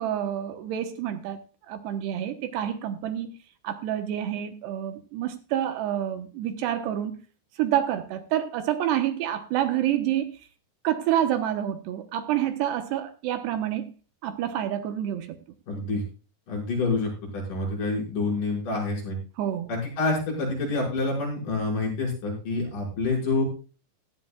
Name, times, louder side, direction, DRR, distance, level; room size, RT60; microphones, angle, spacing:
voice 1, 0.0-1.4 1.7-3.3 3.6-7.2 7.6-10.3 10.8-13.9 14.2-15.4 19.4-19.7, right 11 dB, 75° right, 8 dB, 3.0 m, -28 dB
voice 2, 15.7-16.0 16.5-19.2 19.7-23.4, left 3 dB, 50° left, -2 dB, 7.0 m, -27 dB
16.5 x 12.5 x 2.3 m, 0.35 s
omnidirectional pair, 5.0 m